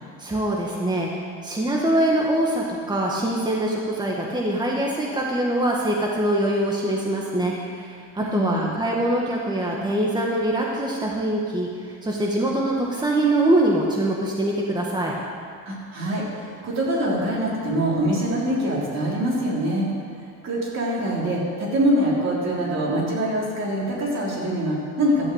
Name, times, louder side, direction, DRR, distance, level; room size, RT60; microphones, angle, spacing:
voice 1, 0.2-11.7 12.0-15.1, right 1 dB, 15° right, -2 dB, 1.6 m, -23 dB
voice 2, 8.2-8.7 15.7-19.9 20.4-25.3, right 1 dB, 60° right, -4 dB, 3.4 m, -24 dB
12.0 x 5.6 x 8.1 m, 2.2 s
cardioid pair, 90°, 30 cm